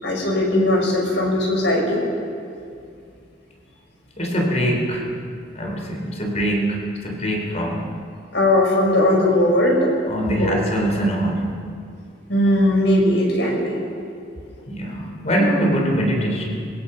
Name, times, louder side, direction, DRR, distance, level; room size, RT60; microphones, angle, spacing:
voice 1, 0.0-2.0 8.3-9.8 10.3-10.6 12.3-13.8, left 1 dB, 65° left, 0 dB, 5.8 m, -18 dB
voice 2, 4.2-5.1 5.6-7.9 10.1-11.6 14.7-16.7, equal, 35° left, 1 dB, 3.8 m, -23 dB
25.0 x 22.5 x 5.7 m, 2.4 s
head